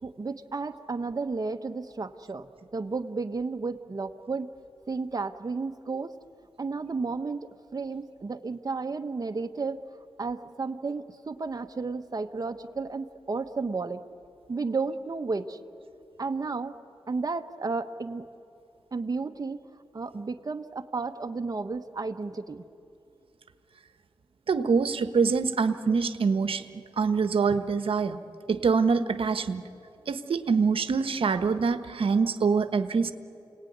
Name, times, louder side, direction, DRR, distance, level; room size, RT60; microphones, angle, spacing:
voice 1, 0.0-4.5 4.9-6.2 6.6-9.8 10.2-14.0 14.5-15.6 16.2-16.8 17.1-18.2 18.9-19.6 19.9-22.7, right 4 dB, 40° right, 7 dB, 1.2 m, -32 dB
voice 2, 24.5-26.6 27.0-28.2 28.5-29.6 30.1-33.1, right 5 dB, 75° right, 10 dB, 1.2 m, -25 dB
29.0 x 19.0 x 9.5 m, 2.7 s
cardioid pair, 70°, 9 cm